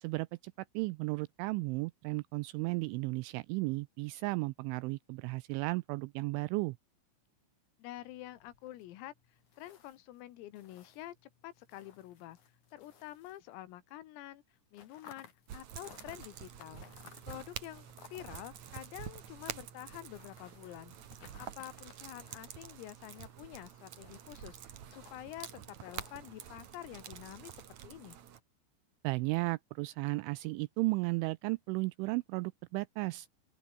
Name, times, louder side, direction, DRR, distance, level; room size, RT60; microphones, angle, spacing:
voice 1, 0.0-6.8 29.0-33.3, right 24 dB, 85° right, 2.7 m, -34 dB
voice 2, 7.8-9.1 9.6-11.2 11.4-12.4 12.7-14.4 14.7-16.8 17.3-28.2, left 14 dB, 85° left, 4.4 m, -48 dB
sound 1, 8.0-14.0 14.2-26.5, left 7 dB, 45° left, 3.4 m, -61 dB
sound 2, 15.5-28.4, right 9 dB, 55° right, 2.1 m, -48 dB
open air
omnidirectional pair, 5.9 m